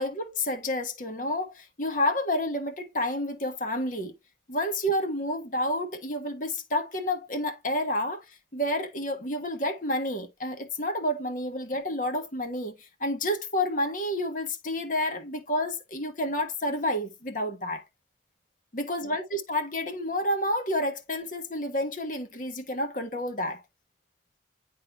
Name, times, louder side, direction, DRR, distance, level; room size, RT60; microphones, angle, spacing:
voice 1, 0.0-4.1 4.5-8.2 8.5-17.8 18.7-23.6, left 1 dB, 45° left, 1.3 m, -29 dB
10.5 x 3.8 x 2.3 m
head